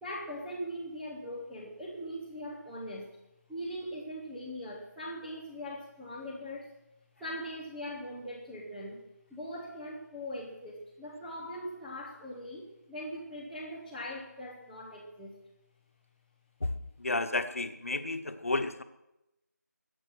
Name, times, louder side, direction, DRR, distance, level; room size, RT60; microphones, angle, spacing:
voice 1, 0.0-3.2 3.5-6.7 7.2-15.3, equal, ahead, -8 dB, 0.7 m, -41 dB
voice 2, 16.6-18.8, left 2 dB, 50° left, 9 dB, 1.4 m, -32 dB
22.5 x 8.9 x 6.3 m, 0.90 s
figure-of-eight pair, 170°, 10 cm